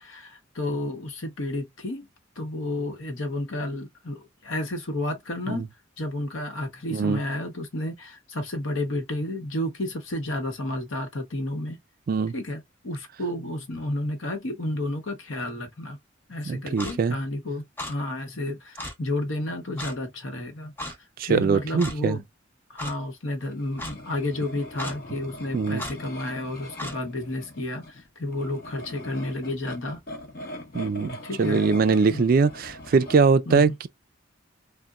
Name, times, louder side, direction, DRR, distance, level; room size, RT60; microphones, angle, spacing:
voice 1, 0.0-2.1 2.4-5.6 6.0-11.8 12.3-16.0 16.3-20.7 21.2-22.2 22.7-30.0 30.9-31.6 32.1-32.2 33.5-33.7, left 1 dB, 75° left, 1.0 m, -31 dB
voice 2, 16.5-17.2 21.2-22.2 25.5-25.8 30.7-33.9, right 4 dB, 45° right, 0.3 m, -22 dB
Clock, 16.8-17.0 17.8-17.9 18.8-18.9 19.8-20.0 20.8-20.9 21.8-22.0 22.8-22.9 23.8-23.9 24.8-25.0 25.8-26.0 26.8-27.0, left 1 dB, 10° left, 0.6 m, -34 dB
sound 1, 23.5-33.2, left 1 dB, 45° left, 0.7 m, -42 dB
3.9 x 2.1 x 2.3 m
head